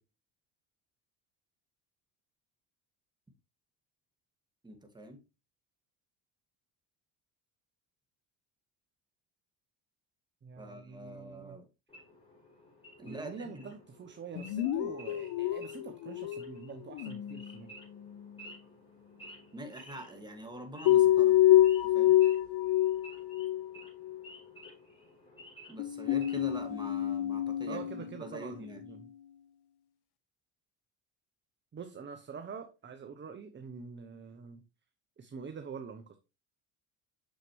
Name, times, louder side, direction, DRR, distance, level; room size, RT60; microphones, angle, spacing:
voice 1, 4.6-5.2 10.6-11.7 13.0-13.7 19.5-21.4 21.9-22.2 25.7-28.8, right 1 dB, 10° right, 2.0 m, -45 dB
voice 2, 10.4-11.6 13.0-17.7 27.7-29.1 31.7-34.6 35.2-36.2, right 5 dB, 25° right, 0.8 m, -45 dB
Wild animals / Idling, 11.9-26.6, equal, 10° left, 4.4 m, -54 dB
sound 1, 14.4-16.6 16.9-17.6 20.9-23.7 24.0-24.2 25.8-28.6, left 13 dB, 65° left, 0.8 m, -27 dB
6.6 x 6.4 x 3.2 m
supercardioid pair, 90°, 43 cm